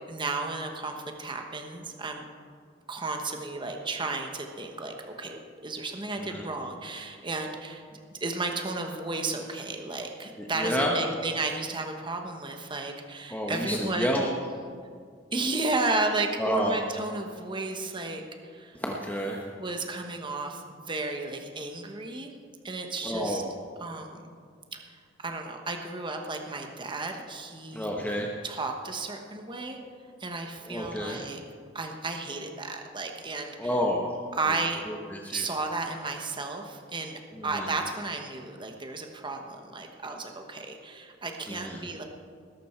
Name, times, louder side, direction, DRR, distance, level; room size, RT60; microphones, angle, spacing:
voice 1, 0.1-2.3 2.9-14.3 15.3-18.8 19.6-22.3 22.6-23.4 23.8-24.2 24.7-27.9 28.4-29.8 30.2-31.4 31.7-33.8 34.4-34.8 35.3-42.0, right 3 dB, 25° right, 4 dB, 1.2 m, -33 dB
voice 2, 10.4-11.1 13.3-14.3 16.4-16.8 18.7-19.4 23.0-23.6 27.7-28.3 30.7-31.2 33.6-34.1 34.9-35.4 37.3-37.7 41.5-41.9, equal, 10° left, 0 dB, 1.0 m, -30 dB
20.0 x 11.5 x 4.5 m, 2.1 s
head